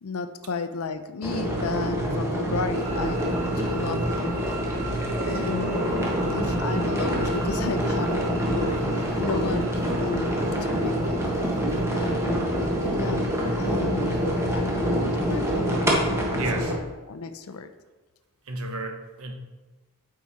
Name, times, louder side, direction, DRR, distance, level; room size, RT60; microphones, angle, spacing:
voice 1, 0.0-3.2 3.6-4.6 5.2-6.1 6.3-9.7 10.0-11.2 11.9-13.3 13.6-14.2 14.5-17.7, left 4 dB, 70° left, 10 dB, 0.5 m, -33 dB
sound 1, 1.2-16.7, equal, 10° right, 1.2 m, -26 dB
sound 2, 2.7-15.8, right 3 dB, 35° right, 1.4 m, -41 dB
voice 2, 16.4-16.7 18.5-19.3, right 2 dB, 70° right, 4 dB, 1.1 m, -32 dB
8.5 x 4.7 x 4.1 m, 1.3 s
head